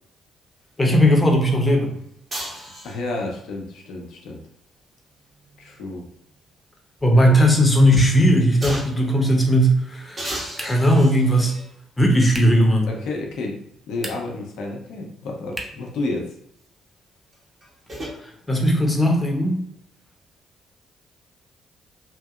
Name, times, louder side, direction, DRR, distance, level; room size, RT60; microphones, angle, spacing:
voice 1, 0.8-1.9 7.0-10.3 10.6-11.6 12.0-12.9 18.2-19.6, equal, 20° left, 2 dB, 0.8 m, -17 dB
sound 1, 2.3-3.3 5.0-6.6 7.0-7.1 8.6-9.1 10.2-11.7 12.6-12.7 17.3-18.2, right 1 dB, 40° right, 1.4 m, -35 dB
voice 2, 2.5-4.4 5.6-6.1 7.2-7.4 12.8-16.4, left 2 dB, 70° left, 1 dB, 0.6 m, -31 dB
sound 2, 10.5-11.0 12.3-12.7 13.9-14.5 15.5-15.9, right 1 dB, 10° right, 0.7 m, -36 dB
2.8 x 2.6 x 2.4 m, 0.76 s
hypercardioid pair, 45°, 0 cm